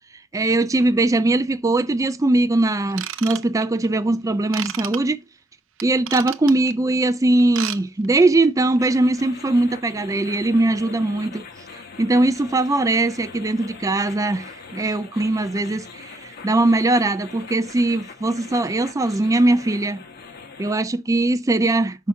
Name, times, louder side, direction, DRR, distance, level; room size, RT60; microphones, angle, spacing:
voice 1, 0.3-5.2 5.8-11.4 11.7-20.0 20.6-22.1, right 2 dB, 15° right, 0.4 m, -20 dB
Ratchet pawl / Tools, 2.9-3.9 4.5-5.0 5.8-6.7 7.4-8.2 8.8-8.9, right 11 dB, 60° right, 0.6 m, -31 dB
sound 1, 8.8-20.8, left 4 dB, 45° left, 0.9 m, -42 dB
5.7 x 5.6 x 4.6 m
head